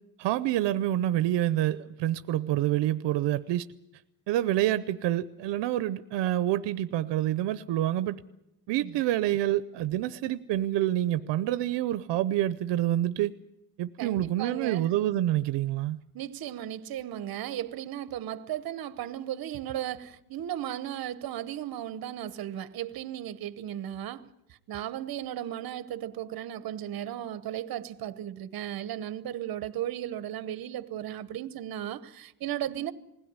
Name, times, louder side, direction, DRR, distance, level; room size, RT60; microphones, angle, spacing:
voice 1, 0.2-3.7 4.3-8.2 8.7-13.3 13.8-16.0, right 13 dB, 85° right, 0.7 m, -27 dB
voice 2, 14.0-14.9 16.1-24.3 24.7-32.9, right 11 dB, 60° right, 1.0 m, -35 dB
21.0 x 16.5 x 9.6 m
cardioid pair, 140°, 41 cm